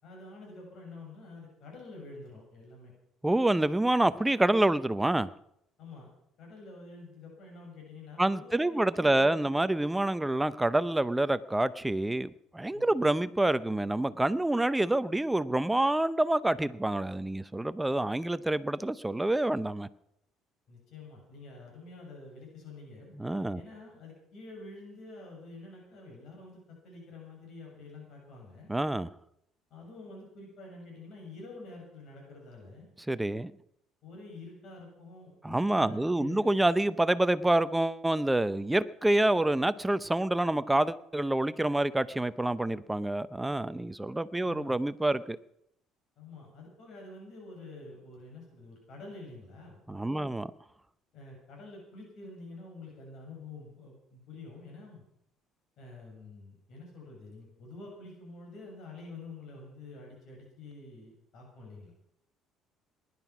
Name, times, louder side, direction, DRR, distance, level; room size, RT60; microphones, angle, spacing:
voice 1, 0.0-2.9 5.8-6.1 6.4-9.5 12.7-13.1 20.7-23.1 23.5-28.7 29.7-32.9 34.0-36.5 44.4-44.8 46.2-50.3 51.1-55.0 55.8-61.9, left 2 dB, 55° left, 6.9 m, -48 dB
voice 2, 3.2-5.3 8.2-19.9 23.2-23.6 28.7-29.1 33.1-33.5 35.4-45.4 49.9-50.5, right 1 dB, 5° right, 0.6 m, -27 dB
19.5 x 11.0 x 6.0 m
cardioid pair, 130°, 0 cm